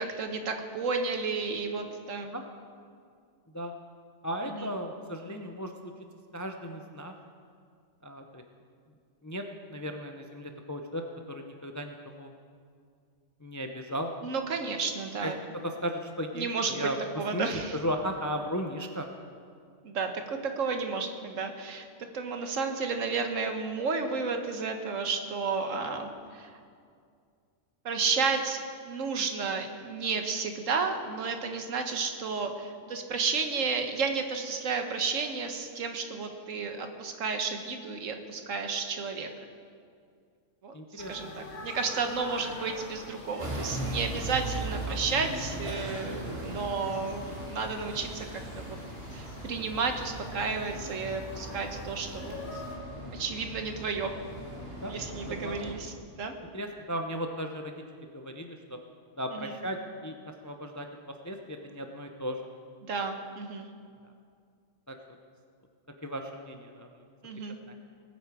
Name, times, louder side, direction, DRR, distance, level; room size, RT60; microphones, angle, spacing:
voice 1, 0.0-2.3 4.5-4.7 14.2-15.4 16.3-16.9 17.2-17.8 19.8-26.5 27.8-28.6 28.8-39.3 40.6-40.7 41.1-48.8 49.1-52.6 53.1-54.1 54.9-56.3 59.3-59.6 62.8-63.7 67.2-67.6, right 4 dB, 70° right, 5 dB, 1.4 m, -32 dB
voice 2, 4.2-5.7 6.3-7.1 8.0-8.4 9.2-9.4 9.7-11.0 11.3-12.3 13.4-14.1 15.2-15.3 15.6-17.0 17.3-19.1 40.7-41.5 45.2-45.3 54.8-54.9 55.4-55.6 56.5-58.8 59.2-59.8 60.0-62.4 64.9-65.0 66.0-67.0 67.7-67.8, equal, 20° left, 4 dB, 0.4 m, -36 dB
sound 1, 41.0-52.8, left 2 dB, 55° left, 1.8 m, -46 dB
sound 2, 43.4-55.7, right 1 dB, 45° right, 2.1 m, -39 dB
19.5 x 8.3 x 4.8 m, 2.2 s
omnidirectional pair, 1.4 m